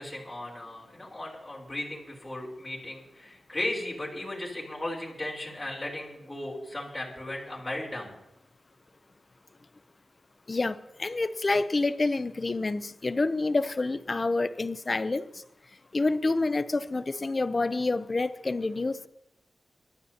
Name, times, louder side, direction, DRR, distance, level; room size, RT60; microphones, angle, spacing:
voice 1, 0.0-8.1, left 1 dB, 20° left, -4 dB, 4.1 m, -36 dB
voice 2, 10.5-15.2 15.9-19.1, left 3 dB, 40° left, 13 dB, 0.7 m, -28 dB
24.5 x 12.0 x 2.9 m, 0.89 s
cardioid pair, 70°, 0 cm